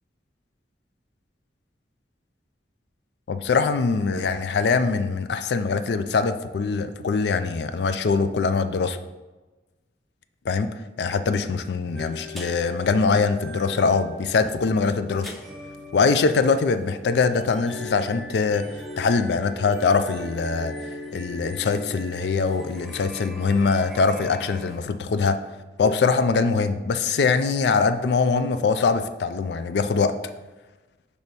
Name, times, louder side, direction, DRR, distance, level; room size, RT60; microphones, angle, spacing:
voice 1, 3.3-9.0 10.4-10.7 11.0-15.3 15.9-20.8 21.1-25.4 25.8-30.1, left 4 dB, 70° left, 10 dB, 0.4 m, -23 dB
sound 1, 12.0-24.8, left 1 dB, ahead, 0.5 m, -40 dB
6.6 x 3.5 x 4.1 m, 1.2 s
head